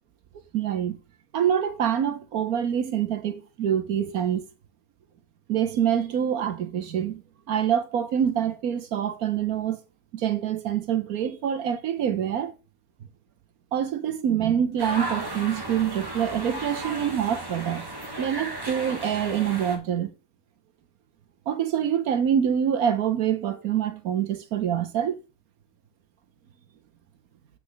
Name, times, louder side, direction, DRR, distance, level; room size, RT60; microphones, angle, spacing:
voice 1, 0.5-1.0 1.3-4.5 5.5-7.2 7.5-9.8 10.1-12.5 13.7-17.9 18.2-20.1 21.5-25.2, right 9 dB, 65° right, 0.9 m, -25 dB
sound 1, 14.8-19.8, right 2 dB, 15° right, 1.0 m, -35 dB
8.7 x 5.9 x 3.9 m
omnidirectional pair, 2.3 m